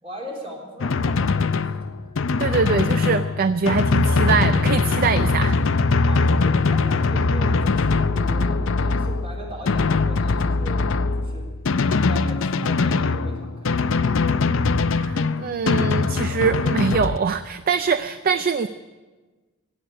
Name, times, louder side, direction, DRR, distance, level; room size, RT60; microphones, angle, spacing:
voice 1, 0.0-2.1 6.0-10.9 11.2-11.5 11.9-14.1, right 1 dB, 30° right, -1 dB, 3.8 m, -39 dB
Drum, 0.8-17.2, left 4 dB, 65° left, 0.5 m, -21 dB
voice 2, 2.4-5.6 14.9-18.7, right 5 dB, 45° right, 12 dB, 0.4 m, -23 dB
16.5 x 8.1 x 9.9 m, 1.3 s
head